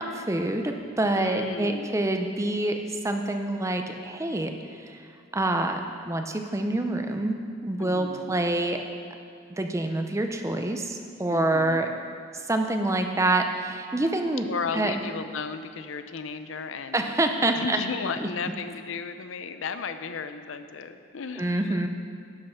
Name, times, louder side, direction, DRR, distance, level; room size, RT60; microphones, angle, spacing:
voice 1, 0.0-2.8 3.0-4.5 4.9-5.0 5.3-5.8 6.1-7.4 7.6-8.8 9.6-11.9 12.5-14.5 14.7-14.9 16.9-17.8 18.2-18.3 21.4-21.9, right 2 dB, 15° right, 5 dB, 0.5 m, -26 dB
voice 2, 1.2-1.9 7.8-8.4 11.3-12.0 14.5-17.2 17.5-21.9, left 5 dB, 70° left, 9 dB, 0.5 m, -35 dB
11.5 x 5.5 x 5.7 m, 2.3 s
head